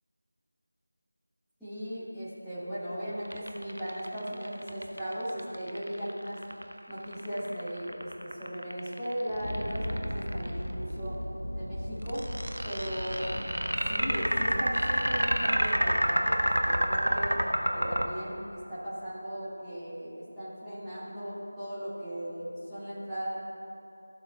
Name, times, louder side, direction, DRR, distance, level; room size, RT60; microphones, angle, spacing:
voice 1, 1.6-6.4 6.9-11.2 11.5-12.3 12.6-13.5 13.8-17.4 17.7-23.3, equal, ahead, -20 dB, 1.9 m, -37 dB
sound 1, 3.3-10.5 12.1-18.1, right 1 dB, 75° right, 0.8 m, -29 dB
sound 2, 9.3-18.9, equal, 85° left, 0.7 m, -39 dB
15.5 x 7.0 x 2.3 m, 2.7 s
figure-of-eight pair, 170°, 0 cm